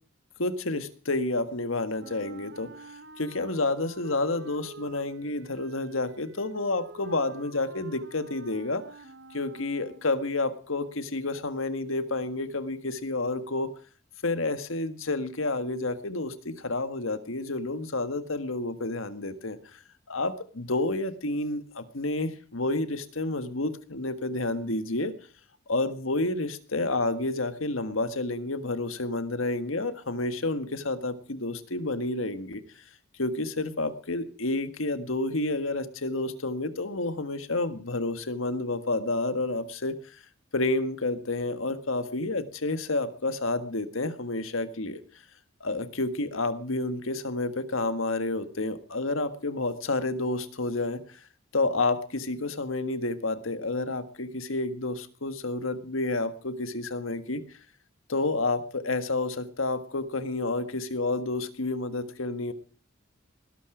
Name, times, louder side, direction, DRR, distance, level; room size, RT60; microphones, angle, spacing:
voice 1, 0.4-2.7 3.2-8.8 9.3-13.7 14.2-19.8 20.1-25.1 25.7-32.6 33.2-40.2 40.5-45.0 45.6-51.2 51.5-57.4 58.1-62.5, left 2 dB, 85° left, 10 dB, 1.7 m, -30 dB
Wind instrument woodwind instrument, 2.0-10.3, right 4 dB, 60° right, 1.2 m, -49 dB
19.5 x 12.0 x 5.0 m, 0.41 s
head